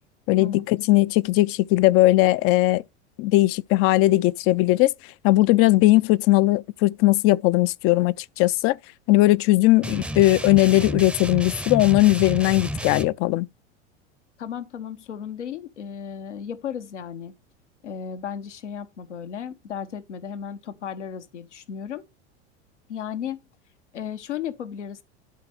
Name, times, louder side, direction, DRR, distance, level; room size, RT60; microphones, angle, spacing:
voice 1, 0.3-2.8 3.2-4.9 5.2-8.8 9.1-13.5, left 17 dB, 40° left, 0.4 m, -19 dB
sound 1, 9.8-13.1, equal, 5° right, 0.6 m, -31 dB
voice 2, 14.4-17.3 17.8-22.0 22.9-23.4 23.9-25.0, left 8 dB, 85° left, 1.1 m, -34 dB
8.3 x 4.2 x 5.0 m
hypercardioid pair, 90°, 34 cm